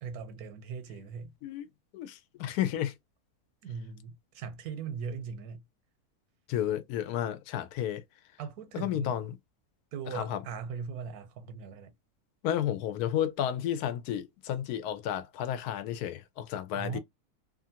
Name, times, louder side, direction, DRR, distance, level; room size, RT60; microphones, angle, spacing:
voice 1, 0.0-1.3 3.6-5.6 8.4-9.2 9.9-11.9 16.7-17.0, right 6 dB, 85° right, 1.2 m, -39 dB
voice 2, 1.9-2.9 6.5-8.0 8.7-9.3 10.1-10.4 12.4-17.0, left 11 dB, 85° left, 1.1 m, -32 dB
2.8 x 2.5 x 2.7 m
omnidirectional pair, 1.6 m